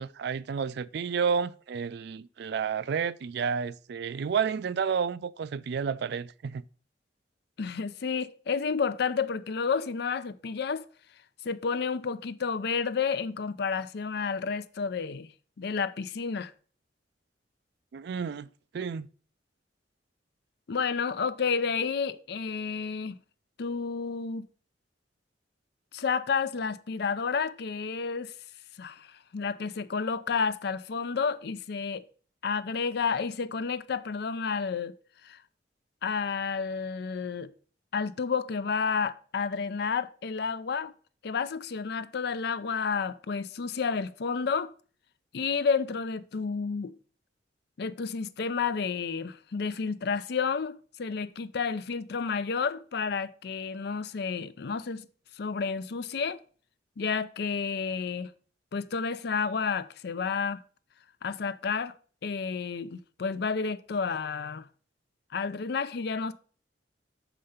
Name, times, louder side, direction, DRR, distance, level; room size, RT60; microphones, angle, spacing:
voice 1, 0.0-6.6 17.9-18.5 18.7-19.1, right 6 dB, 65° right, 0.4 m, -31 dB
voice 2, 7.6-10.8 11.4-15.3 15.6-16.5 20.7-23.2 23.6-24.5 25.9-28.3 28.8-29.1 29.3-32.0 32.4-34.9 35.2-35.4 36.0-37.5 37.9-40.9 41.2-44.7 45.3-46.9 47.8-55.1 55.4-56.4 57.0-58.3 58.7-60.6 61.2-61.9 62.2-64.7 65.3-66.3, left 5 dB, 60° left, 0.5 m, -30 dB
6.6 x 5.0 x 5.6 m
head